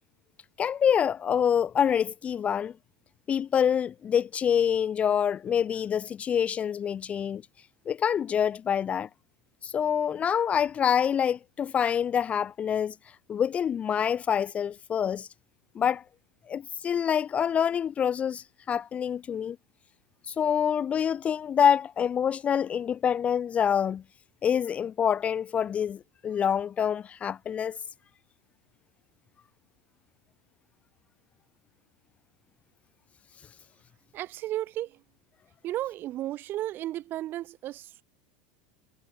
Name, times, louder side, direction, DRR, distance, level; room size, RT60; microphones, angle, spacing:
voice 1, 0.6-2.7 3.3-7.4 7.9-9.1 9.6-13.0 13.3-15.3 15.8-16.0 16.5-19.6 20.3-24.0 24.4-27.8, left 8 dB, 25° left, 0.4 m, -26 dB
voice 2, 34.1-35.0 35.6-38.0, right 14 dB, 40° right, 2.3 m, -34 dB
supercardioid pair, 135°, 5 cm